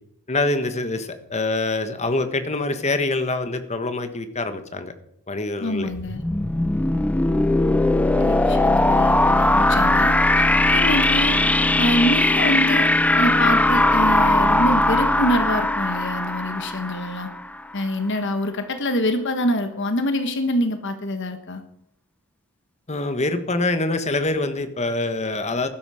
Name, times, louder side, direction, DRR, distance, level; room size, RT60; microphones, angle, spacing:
voice 1, 0.3-4.9 5.3-5.9 22.9-25.7, left 2 dB, 30° left, 9 dB, 1.4 m, -25 dB
voice 2, 5.6-6.2 8.2-11.4 11.8-12.9 13.2-17.3 17.7-21.6, equal, 55° left, 8 dB, 1.4 m, -25 dB
sound 1, 5.9-17.6, left 1 dB, 5° left, 0.6 m, -19 dB
15.0 x 12.0 x 5.0 m, 0.73 s
head